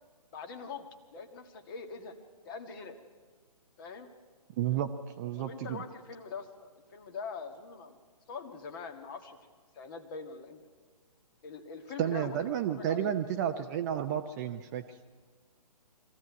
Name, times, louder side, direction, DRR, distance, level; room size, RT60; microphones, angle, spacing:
voice 1, 0.3-2.2 2.4-3.0 3.8-4.1 5.4-8.0 8.3-9.4 9.7-10.6 11.4-12.4 12.7-13.1, left 5 dB, 35° left, 6 dB, 1.7 m, -43 dB
voice 2, 4.6-4.9 5.2-5.8 12.0-14.8, right 10 dB, 25° right, 6 dB, 0.8 m, -31 dB
23.0 x 15.0 x 9.5 m, 1.5 s
figure-of-eight pair, 135°, 20 cm